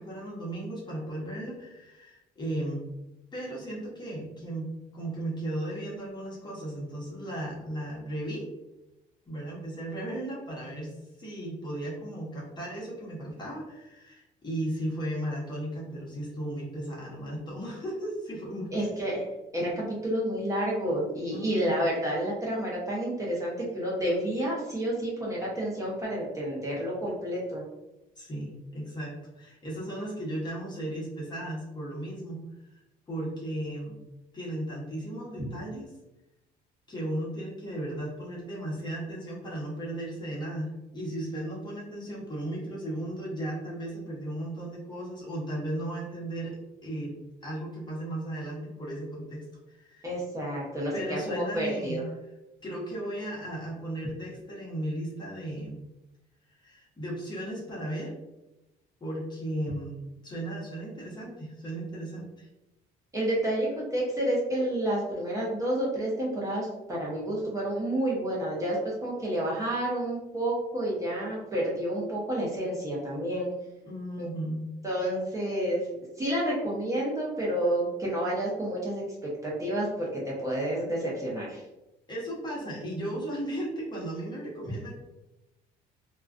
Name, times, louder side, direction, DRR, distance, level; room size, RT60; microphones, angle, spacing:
voice 1, 0.0-2.8 3.3-8.5 9.3-18.8 21.3-21.9 28.2-32.4 32.7-32.8 33.1-34.0 34.3-35.9 36.9-46.6 46.8-50.1 50.9-52.0 52.6-55.8 56.5-58.1 59.0-62.5 73.8-74.7 82.1-84.9, right 1 dB, 25° left, -5 dB, 0.9 m, -36 dB
voice 2, 18.7-19.2 19.5-27.6 35.4-35.5 50.0-52.0 63.1-73.5 74.2-74.3 74.8-75.8 76.2-79.0 79.4-81.6, right 1 dB, 20° right, -5 dB, 0.7 m, -30 dB
2.3 x 2.2 x 2.4 m, 0.97 s
cardioid pair, 110°, 17 cm